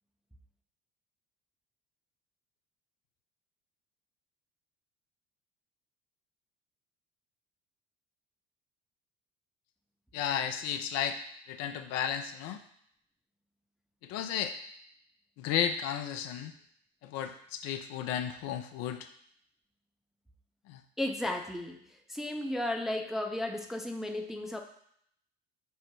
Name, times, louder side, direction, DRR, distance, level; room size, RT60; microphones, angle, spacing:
voice 1, 10.1-11.2 11.5-12.6 14.0-14.5 15.4-16.5 17.0-19.1 20.7-20.8, left 9 dB, 55° left, 7 dB, 0.5 m, -33 dB
voice 2, 21.0-21.8 22.1-24.6, left 1 dB, ahead, 2 dB, 0.5 m, -34 dB
5.5 x 2.1 x 4.4 m, 0.69 s
hypercardioid pair, 65°, 31 cm